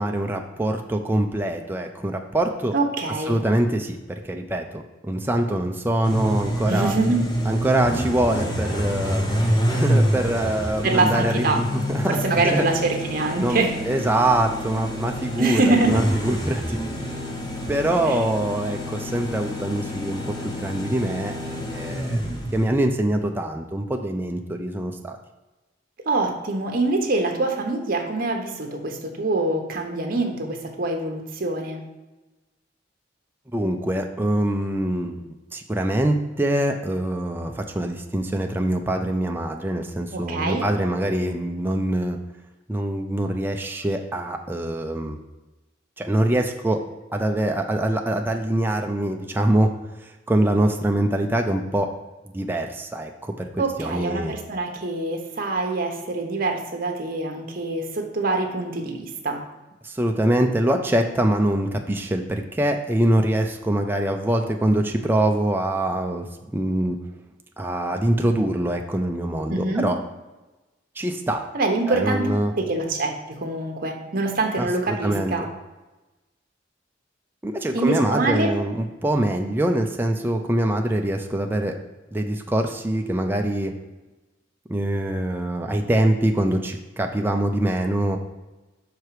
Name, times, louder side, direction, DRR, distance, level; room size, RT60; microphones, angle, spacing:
voice 1, 0.0-2.8 3.3-6.9 7.5-9.2 9.7-12.6 13.4-13.6 13.8-16.8 17.7-21.4 21.7-25.2 33.5-35.2 35.5-42.2 42.7-45.2 46.0-46.8 47.1-49.7 50.0-51.9 52.3-54.3 59.8-67.0 67.6-70.0 71.0-71.5 71.9-72.5 74.6-75.3 77.4-81.8 82.1-83.7 84.7-88.2, right 1 dB, 10° right, 3 dB, 0.4 m, -24 dB
voice 2, 2.7-3.4 6.7-7.2 10.8-11.6 12.1-13.7 15.4-16.0 18.1-18.2 26.1-31.8 40.1-40.6 53.6-59.4 69.5-69.9 71.5-72.3 72.6-75.5 77.7-78.5, right 2 dB, 50° right, 3 dB, 1.0 m, -24 dB
sound 1, 6.0-22.9, equal, 20° left, 0.9 m, -27 dB
5.8 x 4.7 x 4.7 m, 1.1 s
head